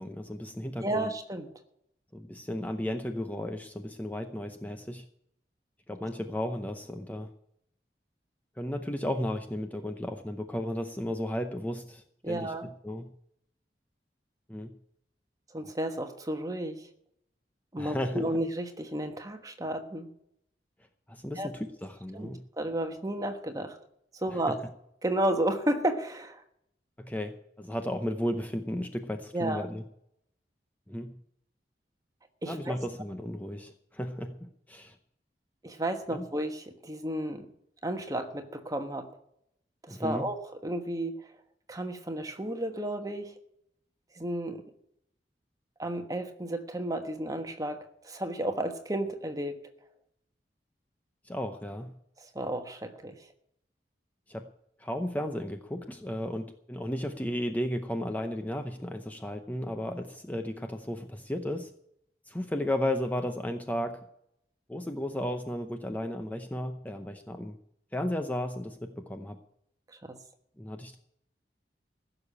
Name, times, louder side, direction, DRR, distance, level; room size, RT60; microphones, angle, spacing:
voice 1, 0.0-1.1 2.1-5.1 5.9-7.3 8.6-13.1 14.5-14.8 17.8-18.3 21.1-22.5 24.3-24.6 27.0-29.8 30.9-31.2 32.5-35.0 36.1-36.2 39.9-40.3 51.2-51.9 54.3-54.5 54.8-61.7 62.3-64.0 64.7-67.6 67.9-69.4 70.6-71.0, left 1 dB, 10° left, 6 dB, 0.7 m, -34 dB
voice 2, 0.8-1.5 12.2-12.7 15.5-16.8 17.7-20.1 21.4-21.5 22.1-22.3 22.6-23.8 24.2-24.5 25.0-26.4 29.3-29.7 32.4-32.8 35.6-37.5 37.8-39.1 39.8-41.1 41.7-43.3 44.2-44.6 45.8-49.6 52.2-53.2 70.0-70.2, right 1 dB, 20° right, 6 dB, 1.3 m, -32 dB
15.5 x 6.8 x 8.6 m, 0.75 s
head